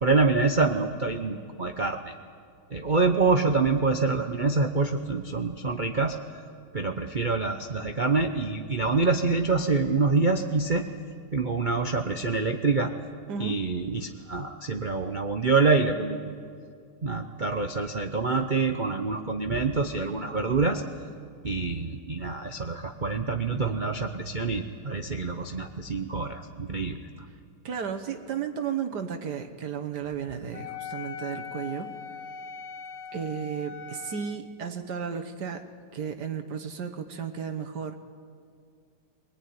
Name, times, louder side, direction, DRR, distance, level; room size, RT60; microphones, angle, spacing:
voice 1, 0.0-2.1 2.7-6.2 6.7-10.8 11.3-12.9 13.4-16.2 17.0-20.8 21.4-27.0, right 4 dB, 90° right, 5 dB, 0.4 m, -26 dB
voice 2, 27.6-31.9 33.1-35.6 35.9-38.0, right 7 dB, 55° right, 6 dB, 1.6 m, -33 dB
Wind instrument woodwind instrument, 30.5-34.4, left 6 dB, 55° left, 1.3 m, -40 dB
24.0 x 18.5 x 9.4 m, 2.2 s
omnidirectional pair, 2.3 m